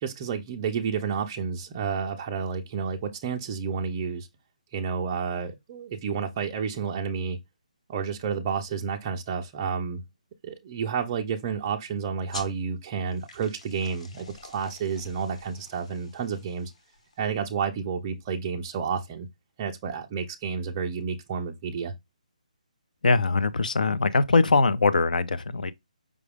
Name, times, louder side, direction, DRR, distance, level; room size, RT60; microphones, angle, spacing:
voice 1, 0.0-4.3 4.7-7.4 7.9-10.0 10.4-16.7 17.2-19.3 19.6-21.9, right 6 dB, 15° right, 0.3 m, -30 dB
sound 1, 12.3-17.4, left 3 dB, 55° left, 1.2 m, -47 dB
voice 2, 23.0-25.7, left 3 dB, 85° left, 0.6 m, -22 dB
5.1 x 2.2 x 3.3 m
hypercardioid pair, 175°, 4 cm